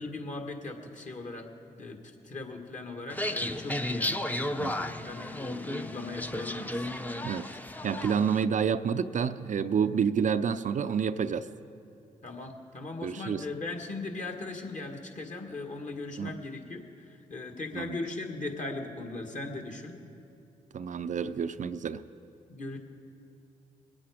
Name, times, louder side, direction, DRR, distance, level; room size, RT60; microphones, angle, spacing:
voice 1, 0.0-1.5 1.8-2.0 2.2-6.9 12.2-19.9 22.5-22.8, left 3 dB, 50° left, 3 dB, 1.9 m, -39 dB
sound 1, 3.1-8.4, left 1 dB, 10° left, 0.7 m, -34 dB
voice 2, 7.8-11.5 13.0-13.4 16.2-16.4 17.7-18.0 20.7-22.0, right 7 dB, 55° right, 11 dB, 0.5 m, -29 dB
21.0 x 8.5 x 5.0 m, 2.5 s
supercardioid pair, 45°, 16 cm